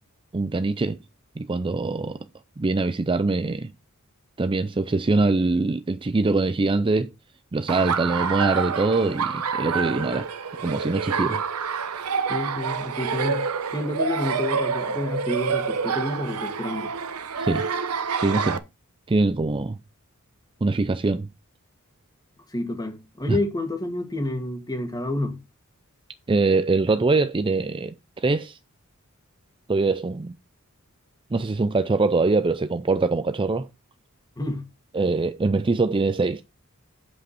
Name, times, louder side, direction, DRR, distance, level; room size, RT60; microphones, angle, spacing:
voice 1, 0.3-1.0 1.4-2.2 2.6-3.7 4.4-7.1 7.5-10.3 10.6-11.4 11.9-12.1 17.4-17.7 18.2-18.6 19.1-19.8 20.6-21.3 23.3-23.4 26.3-28.6 29.7-30.4 31.3-33.7 34.9-36.4, right 3 dB, 25° right, 0.4 m, -23 dB
Laughter, 7.7-18.6, right 5 dB, 90° right, 1.0 m, -27 dB
voice 2, 12.3-13.4 13.7-16.9 22.5-25.4 34.4-34.6, left 1 dB, 15° left, 2.0 m, -29 dB
8.0 x 7.8 x 4.3 m
head